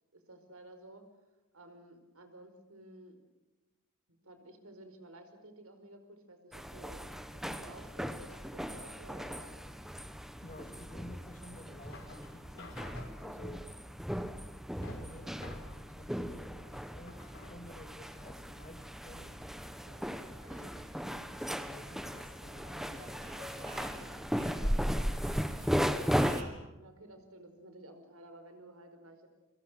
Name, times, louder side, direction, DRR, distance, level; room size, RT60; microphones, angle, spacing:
voice 1, 0.1-1.0 1.5-3.2 4.1-9.8 26.8-29.3, right 1 dB, 75° right, 8 dB, 4.8 m, -53 dB
sound 1, 6.5-26.4, equal, ahead, 1.2 m, -37 dB
sound 2, 7.6-18.4, left 1 dB, 60° left, 5.4 m, -54 dB
voice 2, 10.4-12.8 13.2-13.7 14.7-19.3 20.5-21.0 21.6-23.1 23.4-24.2 24.5-24.8, left 1 dB, 35° left, 6 dB, 2.8 m, -53 dB
sound 3, 19.1-26.5, right 2 dB, 35° right, 4.1 m, -54 dB
29.5 x 24.0 x 6.4 m, 1.1 s
head